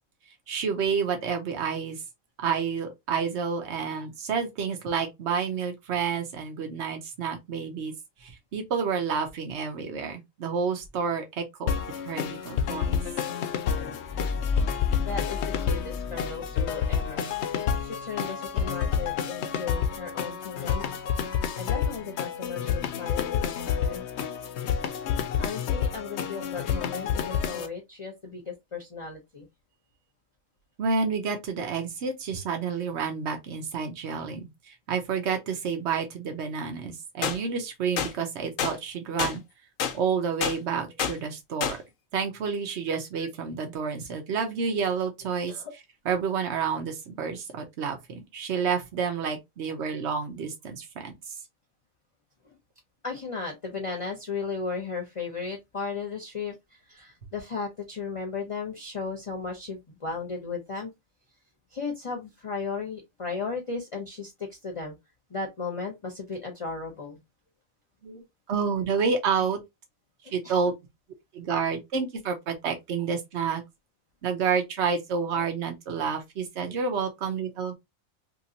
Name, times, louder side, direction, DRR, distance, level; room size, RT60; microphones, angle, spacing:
voice 1, 0.5-2.0 2.4-7.9 8.2-11.8 12.0-13.0 30.8-39.4 39.9-41.8 42.1-45.5 46.1-51.1 68.0-68.2 68.5-69.6 70.3-70.7 71.3-73.6 74.2-77.7, right 6 dB, 60° right, 1.1 m, -29 dB
sound 1, 11.7-27.7, left 7 dB, 65° left, 0.8 m, -29 dB
voice 2, 13.7-14.0 15.0-20.8 21.6-24.1 25.4-29.5 40.9-41.0 45.3-45.7 52.4-52.6 53.0-60.9 61.7-65.0 65.3-67.2 70.4-70.6, left 4 dB, 30° left, 0.6 m, -36 dB
sound 2, 14.1-17.4, left 4 dB, 35° right, 0.7 m, -32 dB
sound 3, 37.2-37.4 38.0-38.1 38.6-38.7 39.2-39.3 39.8-39.9 40.4-40.6 41.0-41.1 41.6-41.8, left 8 dB, 90° left, 1.0 m, -27 dB
3.0 x 2.9 x 2.7 m
omnidirectional pair, 1.4 m